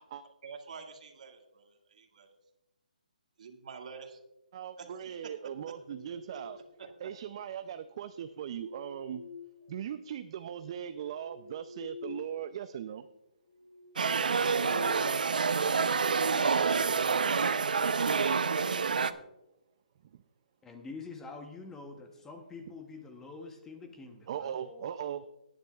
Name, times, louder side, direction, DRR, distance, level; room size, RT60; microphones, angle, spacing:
voice 1, 0.4-2.3 3.4-4.2 4.8-5.3 6.3-6.4 6.8-7.1, right 5 dB, 60° right, 4 dB, 2.0 m, -48 dB
voice 2, 4.5-6.6 7.0-9.2 9.7-13.1 24.3-25.2, right 9 dB, 40° right, 10 dB, 0.5 m, -39 dB
sound 1, 5.4-6.9 7.9-10.1 10.5-12.4 12.7-12.9 13.4-15.8, left 4 dB, 45° left, 4.1 m, -49 dB
sound 2, 14.0-19.1, right 5 dB, 75° right, 0.7 m, -27 dB
voice 3, 20.6-24.9, left 4 dB, 10° left, 5 dB, 1.0 m, -46 dB
19.0 x 10.0 x 2.4 m, 0.91 s
hypercardioid pair, 155°, 5 cm